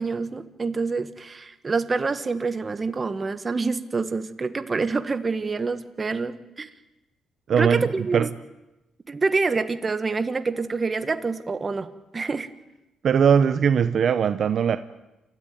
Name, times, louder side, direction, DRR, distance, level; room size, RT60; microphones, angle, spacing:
voice 1, 0.0-6.7 7.6-8.3 9.1-12.5, right 4 dB, 30° right, 11 dB, 1.6 m, -27 dB
voice 2, 7.5-8.3 13.0-14.8, right 7 dB, 60° right, 11 dB, 0.9 m, -20 dB
28.5 x 14.0 x 9.3 m, 1.0 s
cardioid pair, 90°, 0 cm